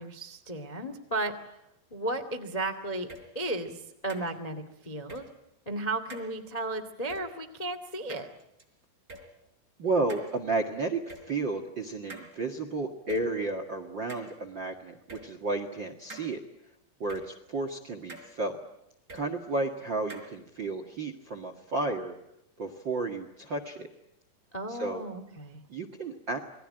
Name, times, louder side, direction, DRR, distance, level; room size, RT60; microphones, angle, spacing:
voice 1, 0.0-1.4 1.9-3.1 3.3-5.2 5.6-8.3 24.5-25.6, right 2 dB, 85° left, 6 dB, 0.3 m, -34 dB
sound 1, 3.1-3.2 4.1-4.3 5.1-5.2 6.1-6.3 7.1-7.2 8.1-8.6 9.1-9.2 10.1-10.3 11.1-11.2 12.1-12.3 13.1-13.2 14.1-14.3 15.1-15.2 16.1-16.3 17.1-17.2 18.1-18.3 19.1-19.2 20.1-20.3, right 2 dB, 15° right, 4.5 m, -44 dB
voice 2, 9.8-11.0 11.3-16.4 17.0-18.5 19.1-22.1 22.6-23.9 24.7-25.0 25.7-26.4, right 3 dB, 60° right, 9 dB, 1.2 m, -32 dB
28.0 x 22.0 x 9.0 m, 0.84 s
omnidirectional pair, 5.2 m